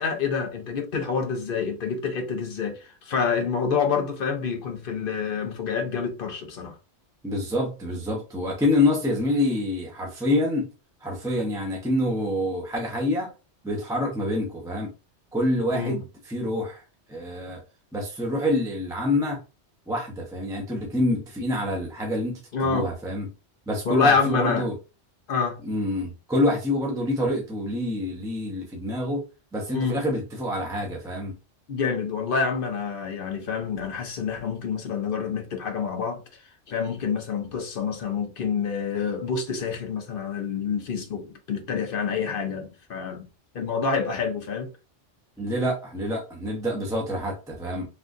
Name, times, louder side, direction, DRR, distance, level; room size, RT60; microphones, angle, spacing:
voice 1, 0.0-6.8 15.7-16.0 22.5-22.9 23.8-24.7 25.3-25.6 29.7-30.0 31.7-36.2 36.7-43.2 43.5-44.7, left 5 dB, 55° left, 0.8 m, -27 dB
voice 2, 7.2-10.7 11.0-13.3 13.6-14.9 15.3-16.8 17.1-17.6 17.9-19.4 19.9-23.3 23.7-24.7 25.6-29.2 29.5-31.3 45.4-47.9, left 1 dB, 5° right, 0.6 m, -26 dB
3.5 x 2.5 x 2.5 m
omnidirectional pair, 1.2 m